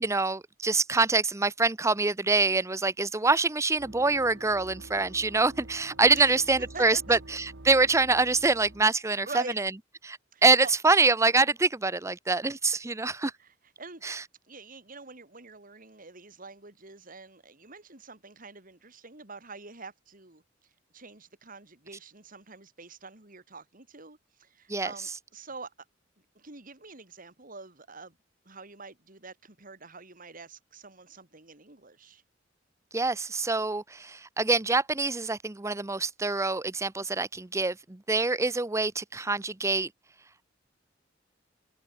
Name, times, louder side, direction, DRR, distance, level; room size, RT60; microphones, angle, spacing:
voice 1, 0.0-9.7 10.0-13.3 14.0-14.2 24.7-24.9 32.9-39.9, right 3 dB, 15° right, 0.7 m, -25 dB
sound 1, 3.8-8.9, right 2 dB, 75° right, 1.6 m, -48 dB
voice 2, 6.1-6.4 6.7-7.2 9.1-9.6 10.3-10.7 13.4-14.2 14.5-20.4 20.9-25.7 26.4-28.2 28.5-32.2, right 4 dB, 45° right, 4.0 m, -45 dB
head